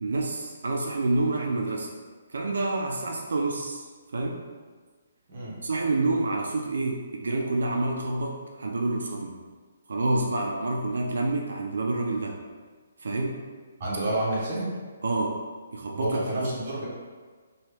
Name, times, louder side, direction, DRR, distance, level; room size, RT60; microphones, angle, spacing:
voice 1, 0.0-1.9 2.3-3.8 4.1-4.4 5.6-9.4 9.9-12.4 13.0-13.4 15.0-15.4 15.7-16.5, right 2 dB, 80° right, 0 dB, 0.3 m, -28 dB
voice 2, 13.8-14.7 16.0-16.8, right 1 dB, 30° right, -6 dB, 0.8 m, -29 dB
3.0 x 2.2 x 3.2 m, 1.5 s
hypercardioid pair, 180°, 0 cm